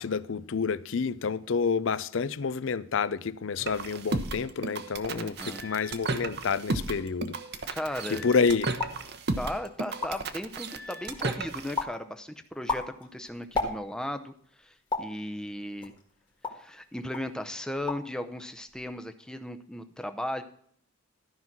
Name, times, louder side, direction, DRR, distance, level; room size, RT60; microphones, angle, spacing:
voice 1, 0.0-7.3 8.1-8.7, left 5 dB, 65° left, 0.5 m, -29 dB
sound 1, 3.6-11.8, right 3 dB, 50° right, 0.9 m, -34 dB
voice 2, 5.1-5.6 7.7-8.2 9.4-15.9 16.5-20.4, left 1 dB, 5° left, 0.6 m, -36 dB
sound 2, 8.7-9.1 9.6-9.7 9.9-10.4 10.9-11.3 11.8-12.0 12.5-14.1 14.9-15.2 15.8-16.7 17.1-17.3 17.7-18.2 18.4-18.9, left 3 dB, 20° left, 1.6 m, -34 dB
13.5 x 5.6 x 6.0 m
head